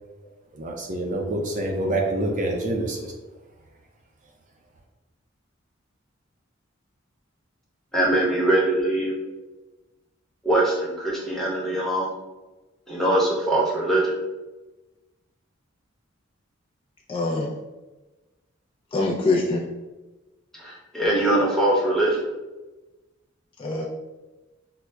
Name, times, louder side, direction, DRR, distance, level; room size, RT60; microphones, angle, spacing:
voice 1, 0.5-3.1, right 1 dB, 40° right, 1 dB, 0.4 m, -26 dB
voice 2, 7.9-9.1 10.4-12.1 12.9-14.1 20.5-22.2, right 1 dB, ahead, -5 dB, 0.8 m, -22 dB
voice 3, 17.1-17.5 18.9-19.6 23.6-23.9, left 2 dB, 25° left, -2 dB, 0.3 m, -24 dB
5.6 x 2.0 x 2.2 m, 1.1 s
head